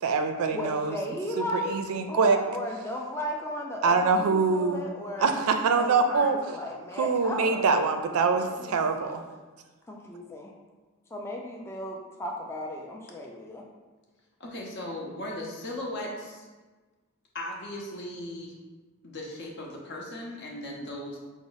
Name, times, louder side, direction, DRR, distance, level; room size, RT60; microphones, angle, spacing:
voice 1, 0.0-1.0 1.4-2.4 3.8-4.8 5.2-6.4 7.0-9.2, right 4 dB, 70° right, 6 dB, 0.4 m, -24 dB
voice 2, 0.5-5.4 5.8-8.7 9.9-10.5 11.1-13.7, left 1 dB, 10° left, -1 dB, 0.3 m, -36 dB
voice 3, 14.4-16.5 17.3-18.5 19.0-21.2, left 1 dB, 55° left, -2 dB, 0.8 m, -37 dB
4.8 x 2.0 x 3.9 m, 1.3 s
head